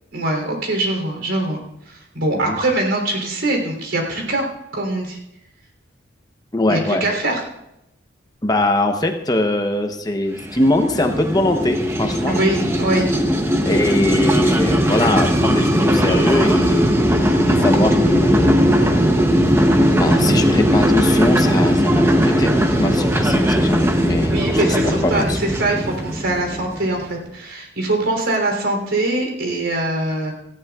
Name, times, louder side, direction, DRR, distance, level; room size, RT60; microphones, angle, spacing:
voice 1, 0.1-1.6 1.9-4.4 4.7-5.2 6.7-7.4 12.3-13.1 24.3-30.3, right 2 dB, 80° right, 1 dB, 3.3 m, -22 dB
voice 2, 6.5-7.0 8.4-12.4 13.6-17.0 17.4-18.5 19.9-22.5 22.8-25.4, left 1 dB, 20° left, 5 dB, 0.8 m, -21 dB
sound 1, 10.4-27.0, equal, 15° right, 0.8 m, -18 dB
18.0 x 14.5 x 2.4 m, 0.86 s
head